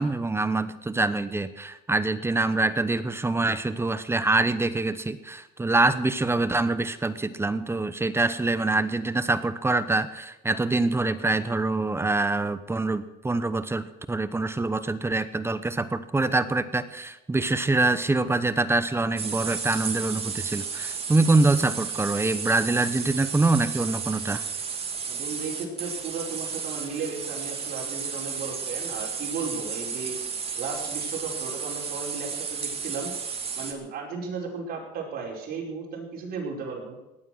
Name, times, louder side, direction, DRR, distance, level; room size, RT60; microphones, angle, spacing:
voice 1, 0.0-24.4, right 2 dB, 15° right, 13 dB, 0.9 m, -25 dB
sound 1, 19.2-33.7, right 6 dB, 35° right, 2.3 m, -33 dB
voice 2, 25.1-30.2 30.6-33.1 33.6-37.0, right 5 dB, 65° right, -1 dB, 5.3 m, -35 dB
17.0 x 11.0 x 6.4 m, 0.97 s
cardioid pair, 110°, 17 cm